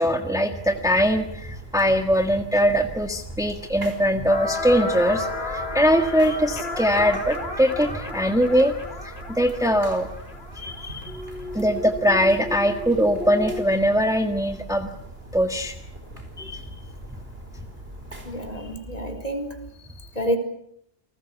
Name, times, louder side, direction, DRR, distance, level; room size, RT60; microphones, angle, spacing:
voice 1, 0.0-8.7 9.0-10.1 10.5-11.2 11.5-14.9 15.3-15.8 16.4-16.6 17.1-17.2 20.0-20.1, equal, 5° right, 6 dB, 1.6 m, -22 dB
sound 1, 0.5-18.8, right 1 dB, 70° right, 5.0 m, -41 dB
sound 2, 4.3-13.6, left 2 dB, 75° left, 3.8 m, -33 dB
voice 2, 18.2-19.6 20.1-20.4, equal, 40° left, 4 dB, 4.4 m, -28 dB
30.0 x 20.0 x 8.3 m, 0.72 s
omnidirectional pair, 1.1 m